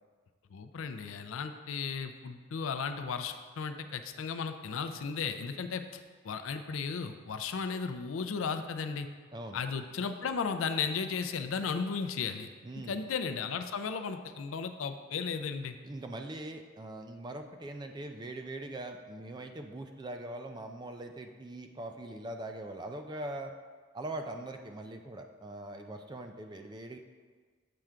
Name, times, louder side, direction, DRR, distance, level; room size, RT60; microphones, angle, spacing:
voice 1, 0.5-9.1 9.5-12.5 12.8-15.8, left 5 dB, 80° left, 8 dB, 0.4 m, -35 dB
voice 2, 12.6-13.1 15.8-23.5 23.9-27.0, right 1 dB, 20° right, 5 dB, 0.3 m, -42 dB
7.7 x 3.7 x 4.4 m, 1.5 s
head